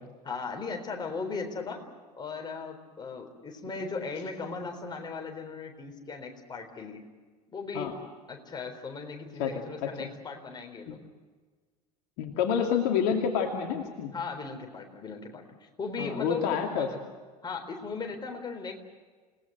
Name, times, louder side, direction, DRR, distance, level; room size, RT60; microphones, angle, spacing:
voice 1, 0.2-1.9 2.1-7.1 7.5-8.0 8.3-11.0 14.1-17.0 17.4-18.8, left 4 dB, 20° left, 3 dB, 4.0 m, -37 dB
voice 2, 12.2-14.1 16.0-16.9, left 7 dB, 50° left, 2 dB, 2.4 m, -28 dB
29.0 x 18.5 x 7.9 m, 1.4 s
figure-of-eight pair, 75°, 21 cm